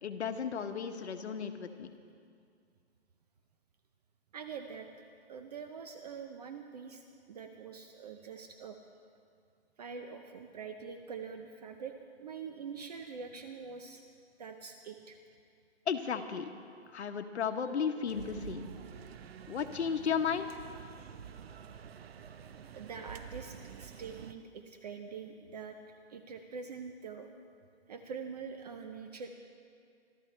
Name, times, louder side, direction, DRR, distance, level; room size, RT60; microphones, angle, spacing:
voice 1, 0.0-1.9 15.9-16.5 16.9-18.6 19.5-20.6, left 7 dB, 75° left, 6 dB, 1.3 m, -34 dB
voice 2, 4.3-4.9 5.3-7.0 7.3-8.8 9.8-14.0 14.4-15.2 22.7-25.8 26.1-27.3 27.9-29.3, right 6 dB, 35° right, 6 dB, 0.7 m, -44 dB
sound 1, 18.1-24.3, right 7 dB, 60° right, 0.9 m, -48 dB
25.5 x 13.5 x 3.3 m, 2.3 s
hypercardioid pair, 165°, 34 cm